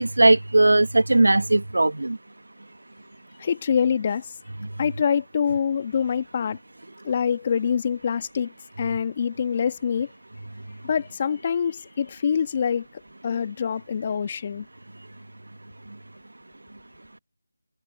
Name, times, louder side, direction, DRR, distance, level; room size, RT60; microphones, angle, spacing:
voice 1, 0.0-2.2, right 2 dB, 75° right, 1.5 m, -18 dB
voice 2, 3.4-4.3 4.8-6.6 7.0-10.1 10.8-12.9 13.2-14.7, left 7 dB, 25° left, 1.8 m, -25 dB
figure-of-eight pair, 165°, 0 cm